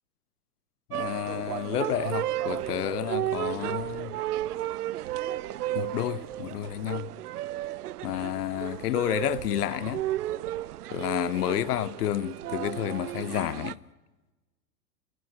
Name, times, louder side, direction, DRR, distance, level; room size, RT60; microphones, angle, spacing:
voice 1, 0.9-4.2 5.7-7.1 8.0-10.0 10.9-13.8, left 13 dB, 85° left, 0.8 m, -30 dB
sound 1, 0.9-13.7, right 14 dB, 85° right, 0.8 m, -33 dB
29.0 x 14.5 x 7.8 m
hypercardioid pair, 120°, 45 cm